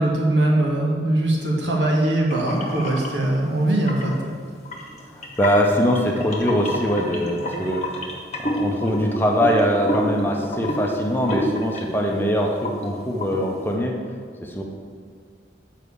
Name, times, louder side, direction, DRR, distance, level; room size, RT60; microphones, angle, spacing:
voice 1, 0.0-4.2, right 1 dB, 90° right, -2 dB, 1.7 m, -21 dB
sound 1, 2.3-3.1 3.7-4.2 4.7-12.2 12.5-12.8 13.2-13.4, left 1 dB, 40° left, 1.1 m, -29 dB
voice 2, 5.1-7.8 8.4-13.9 14.4-14.6, equal, 10° left, 0 dB, 0.7 m, -22 dB
6.9 x 4.6 x 6.9 m, 2.1 s
head